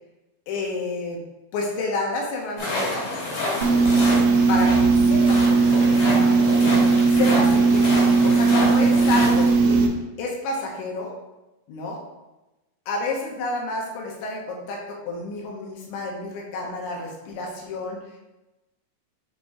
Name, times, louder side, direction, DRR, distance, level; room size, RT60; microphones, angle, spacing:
voice 1, 0.5-1.2 1.5-3.1 3.5-3.8 4.5-6.7 7.1-9.8 10.2-11.2 11.7-12.0 12.9-18.0, left 2 dB, 75° left, -1 dB, 3.1 m, -30 dB
sound 1, 2.6-9.5, left 1 dB, 55° left, 3.5 m, -29 dB
sound 2, 3.6-9.9, right 4 dB, 80° right, 2.5 m, -18 dB
7.0 x 5.2 x 2.7 m, 1.0 s
omnidirectional pair, 5.5 m